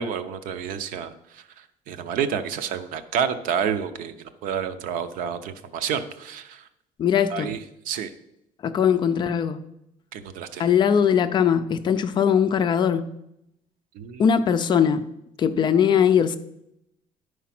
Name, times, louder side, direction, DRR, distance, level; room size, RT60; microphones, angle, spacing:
voice 1, 0.0-6.7 7.3-7.6 7.9-8.1 10.1-10.7 13.9-14.2, right 7 dB, 70° right, 10 dB, 0.7 m, -29 dB
voice 2, 7.0-7.5 8.6-9.6 10.6-13.1 14.2-15.0 15.4-16.4, left 8 dB, 35° left, 10 dB, 0.4 m, -20 dB
10.5 x 4.7 x 5.9 m, 0.82 s
cardioid pair, 180°, 14 cm